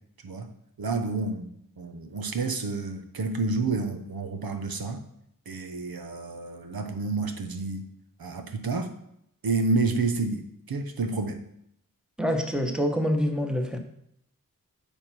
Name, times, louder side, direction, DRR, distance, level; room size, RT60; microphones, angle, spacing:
voice 1, 0.8-5.0 5.5-7.9 8.2-8.9 9.4-11.4, right 3 dB, 85° right, 7 dB, 0.9 m, -29 dB
voice 2, 12.2-13.8, equal, ahead, 4 dB, 1.0 m, -26 dB
9.0 x 3.6 x 6.0 m, 0.75 s
wide cardioid pair, 70°, 35 cm